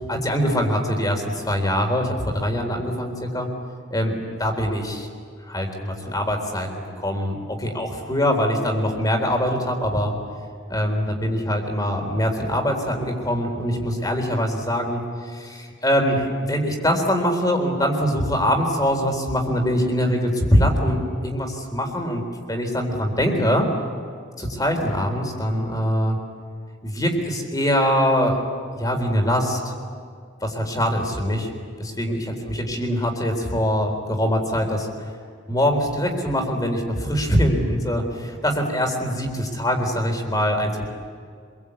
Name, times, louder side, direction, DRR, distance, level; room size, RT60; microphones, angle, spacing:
voice 1, 0.1-3.5 3.9-5.1 5.5-10.1 10.7-22.2 22.5-23.7 24.4-26.2 26.8-28.4 28.7-29.7 30.4-31.5 31.8-34.9 35.5-40.9, equal, 20° left, 3 dB, 3.9 m, -23 dB
26.5 x 23.0 x 8.5 m, 2.2 s
head